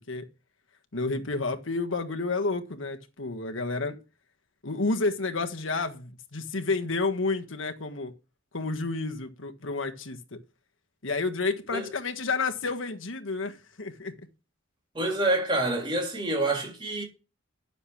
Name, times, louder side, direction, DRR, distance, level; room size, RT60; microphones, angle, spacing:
voice 1, 0.9-4.0 4.6-8.1 8.5-10.4 11.0-14.2, left 3 dB, 75° left, 1.5 m, -30 dB
voice 2, 14.9-17.0, right 2 dB, 25° right, 3.4 m, -27 dB
10.0 x 7.1 x 5.9 m
head